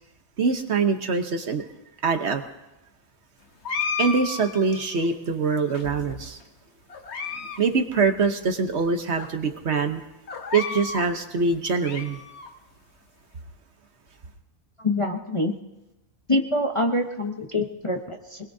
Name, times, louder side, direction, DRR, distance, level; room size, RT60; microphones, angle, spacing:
voice 1, 0.4-1.6 2.0-2.4 4.0-6.4 7.4-10.0 10.5-12.2, right 4 dB, 55° right, 7 dB, 1.2 m, -24 dB
sound 1, 3.6-5.1 5.7-6.4 6.9-7.6 7.9-8.0 8.7-8.8 9.2-9.3 10.3-11.1 11.5-12.5, left 5 dB, 55° left, 1.3 m, -32 dB
voice 2, 14.8-15.5 16.3-18.4, left 1 dB, 25° left, 1 dB, 0.8 m, -25 dB
25.0 x 20.5 x 2.7 m, 0.99 s
omnidirectional pair, 1.4 m